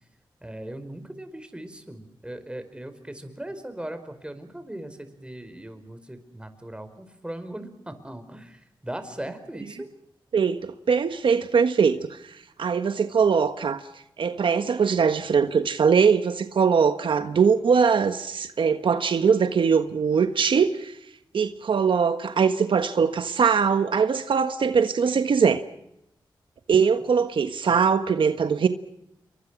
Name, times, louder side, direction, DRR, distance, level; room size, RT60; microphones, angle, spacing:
voice 1, 0.4-9.9, right 1 dB, 10° right, 4.8 m, -39 dB
voice 2, 10.3-13.8 14.2-21.0 21.3-25.6 26.7-28.7, right 6 dB, 75° right, 1.4 m, -21 dB
28.5 x 23.5 x 6.2 m
cardioid pair, 65°, 9 cm